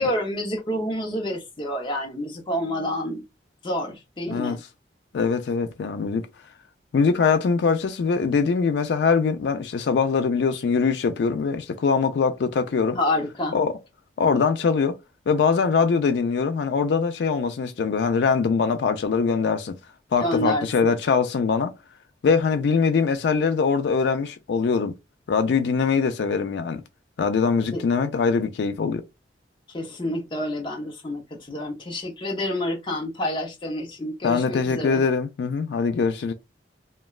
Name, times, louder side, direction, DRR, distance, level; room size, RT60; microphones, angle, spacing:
voice 1, 0.0-3.2 3.6-4.6 13.0-13.6 20.2-20.7 27.7-27.8 29.7-35.0, left 1 dB, 25° left, 0.7 m, -28 dB
voice 2, 5.1-6.3 6.9-13.0 13.5-13.7 14.2-15.0 15.3-19.8 20.1-21.7 22.2-24.9 25.3-26.8 27.2-29.0 34.2-36.3, left 5 dB, 75° left, 0.3 m, -22 dB
2.9 x 2.2 x 2.3 m
head